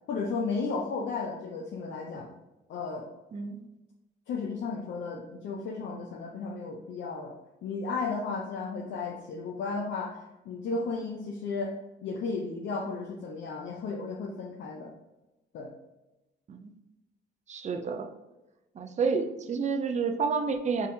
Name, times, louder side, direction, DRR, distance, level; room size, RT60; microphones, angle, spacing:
voice 1, 0.1-2.3 2.7-3.1 4.3-7.3 7.6-11.7 12.0-14.9 15.5-15.7, left 4 dB, 70° left, -1 dB, 0.6 m, -34 dB
voice 2, 3.3-3.6 16.5-16.7 17.5-18.1 18.8-20.9, right 5 dB, 35° right, 7 dB, 0.5 m, -29 dB
4.4 x 3.4 x 2.7 m, 1.0 s
cardioid pair, 90°, 20 cm